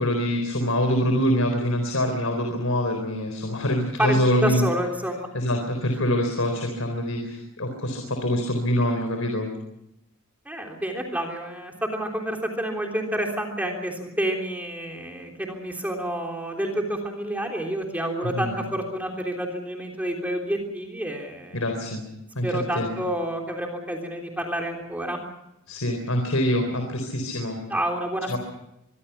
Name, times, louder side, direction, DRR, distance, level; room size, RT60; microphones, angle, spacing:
voice 1, 0.0-4.6 5.3-9.5 18.2-18.6 21.5-22.0 22.4-22.9 25.7-27.6 28.3-28.4, equal, 75° left, 4 dB, 4.0 m, -25 dB
voice 2, 4.0-5.3 10.4-21.6 22.4-25.2 27.7-28.4, right 1 dB, 5° right, 1 dB, 3.4 m, -29 dB
24.5 x 23.5 x 5.9 m, 0.85 s
head